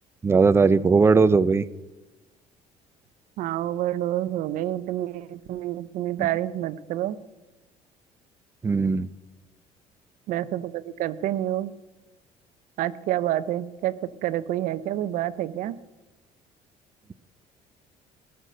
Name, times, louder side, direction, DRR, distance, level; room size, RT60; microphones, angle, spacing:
voice 1, 0.2-1.6 6.2-6.3 8.6-9.1, right 4 dB, 20° right, 17 dB, 0.4 m, -19 dB
voice 2, 3.4-7.2 10.3-11.7 12.8-13.9 14.2-15.8, right 13 dB, 70° right, 16 dB, 0.7 m, -28 dB
17.5 x 6.5 x 6.6 m, 1.1 s
cardioid pair, 115°, 14 cm